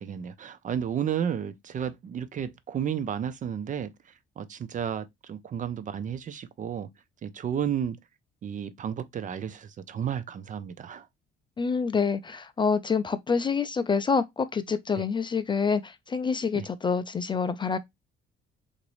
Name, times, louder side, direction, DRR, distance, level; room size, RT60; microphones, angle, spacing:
voice 1, 0.0-3.9 4.4-6.9 7.2-8.0 8.4-11.1 14.9-15.0 16.5-16.7, right 8 dB, 40° right, 0.5 m, -32 dB
voice 2, 11.6-17.8, left 5 dB, 25° left, 0.3 m, -27 dB
3.9 x 2.6 x 3.0 m
cardioid pair, 100°, 20 cm